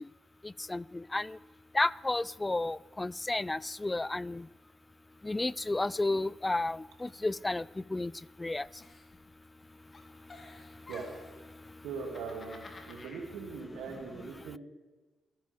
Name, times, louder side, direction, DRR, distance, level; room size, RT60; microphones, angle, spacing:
voice 1, 1.7-4.4 5.2-7.6 7.9-8.1 8.4-8.6, left 2 dB, 20° left, 21 dB, 0.3 m, -31 dB
Giggle, 8.8-9.6 9.9-11.4 11.9-13.2, left 3 dB, 45° left, 2.5 m, -51 dB
voice 2, 11.8-14.6, right 5 dB, 85° right, 1 dB, 2.6 m, -41 dB
28.5 x 10.5 x 3.6 m, 1.3 s
supercardioid pair, 50°, 0 cm